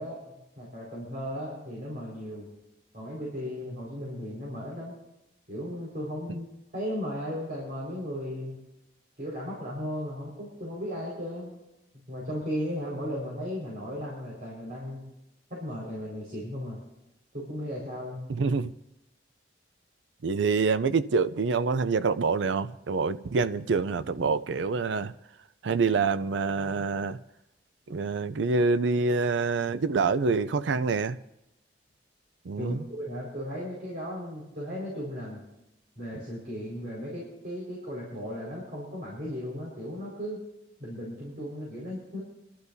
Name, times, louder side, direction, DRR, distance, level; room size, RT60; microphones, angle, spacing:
voice 1, 0.0-2.5 2.9-4.9 5.5-8.6 9.2-11.6 12.1-15.0 15.5-16.8 17.3-18.2 32.6-35.4 36.0-40.4 40.8-42.2, equal, 50° right, 4.9 m, -36 dB
voice 2, 18.3-18.7 20.2-25.1 25.6-27.2 27.9-31.2 32.5-32.8, right 4 dB, 85° right, 0.5 m, -26 dB
26.5 x 12.0 x 2.7 m
head